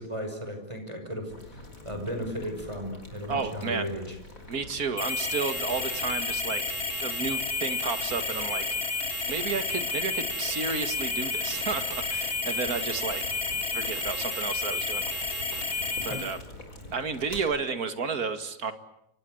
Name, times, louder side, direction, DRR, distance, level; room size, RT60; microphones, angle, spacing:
voice 1, 0.0-4.2 16.1-16.2, equal, 15° right, 6 dB, 6.0 m, -35 dB
Boiling, 1.3-17.4, left 1 dB, 55° left, 5.5 m, -46 dB
voice 2, 3.3-3.9 4.5-6.6 7.0-8.7 9.3-13.2 13.7-15.0 16.0-16.4 16.9-18.7, right 5 dB, 60° right, 10 dB, 2.4 m, -32 dB
sound 1, 5.0-16.4, left 3 dB, 35° left, 2.9 m, -31 dB
29.5 x 25.5 x 8.0 m, 0.76 s
omnidirectional pair, 1.8 m